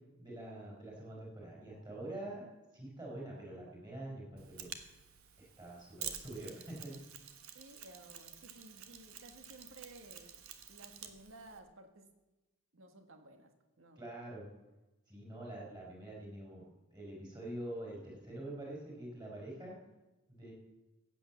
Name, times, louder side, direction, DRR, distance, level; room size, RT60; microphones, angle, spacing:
voice 1, 0.2-2.4 2.7-4.7 5.4-6.9 14.0-14.5 15.1-16.6 16.9-19.8 20.3-20.5, right 1 dB, 20° right, -3 dB, 4.7 m, -45 dB
Mechanisms, 4.4-11.6, right 9 dB, 85° right, 1.3 m, -49 dB
voice 2, 7.5-10.3 10.7-12.1 12.7-14.0, right 2 dB, 65° right, 6 dB, 1.7 m, -56 dB
15.5 x 8.6 x 7.2 m, 1.1 s
head